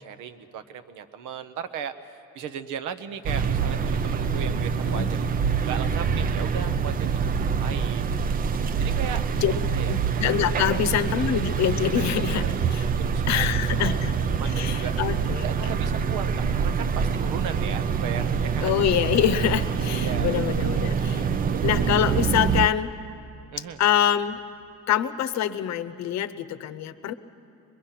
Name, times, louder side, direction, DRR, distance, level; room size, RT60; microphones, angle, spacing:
voice 1, 0.0-8.1 8.8-9.9 10.7-10.9 12.0-12.5 13.0-13.5 13.8-13.9 14.4-14.9 15.4-18.7 19.8-20.5 20.9-21.3 23.5-23.8, right 8 dB, 80° right, 10 dB, 1.1 m, -37 dB
sound 1, 3.2-22.7, right 6 dB, 30° right, 0.4 m, -25 dB
voice 2, 9.9-12.9 13.3-14.1 14.4-15.4 18.6-21.3 21.6-22.9 23.8-24.4 24.9-27.1, left 10 dB, 60° left, 11 dB, 0.8 m, -25 dB
23.5 x 22.0 x 5.8 m, 3.0 s
cardioid pair, 165°, 31 cm